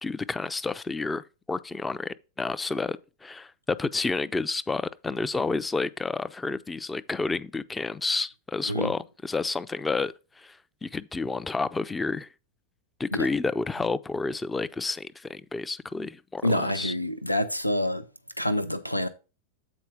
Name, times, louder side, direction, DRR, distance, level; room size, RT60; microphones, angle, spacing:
voice 1, 0.0-12.3 13.0-16.9, left 3 dB, 10° left, 0.4 m, -30 dB
voice 2, 16.4-18.0 18.4-19.1, left 1 dB, 90° left, 0.5 m, -27 dB
8.2 x 4.3 x 4.9 m
figure-of-eight pair, 90°, 0 cm